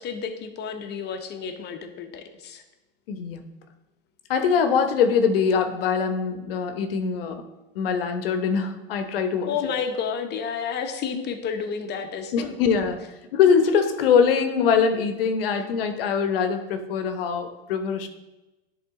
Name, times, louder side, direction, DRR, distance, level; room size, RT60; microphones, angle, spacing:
voice 1, 0.0-2.6 9.5-12.6, left 6 dB, 35° left, 7 dB, 0.9 m, -31 dB
voice 2, 3.1-3.4 4.3-7.4 7.7-9.5 12.3-13.0 13.3-18.1, left 6 dB, 70° left, 8 dB, 1.0 m, -22 dB
10.5 x 3.7 x 3.7 m, 1.1 s
hypercardioid pair, 100°, 29 cm